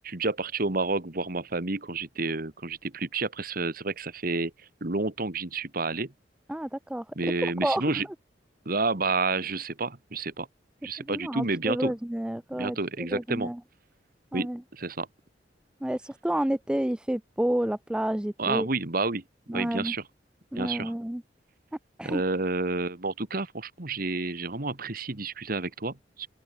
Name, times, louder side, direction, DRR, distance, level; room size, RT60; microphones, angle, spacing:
voice 1, 0.0-4.5 4.8-6.1 7.2-8.1 8.7-10.5 10.8-11.9 12.5-13.5 14.3-15.1 18.4-19.2 19.5-20.0 20.6-20.9 22.0-26.3, right 3 dB, 55° right, 1.9 m, -30 dB
voice 2, 6.5-7.0 7.6-8.0 11.1-13.6 14.3-14.6 15.8-18.7 19.5-19.9 20.5-21.2 22.0-22.2, right 1 dB, 5° right, 0.3 m, -30 dB
open air
head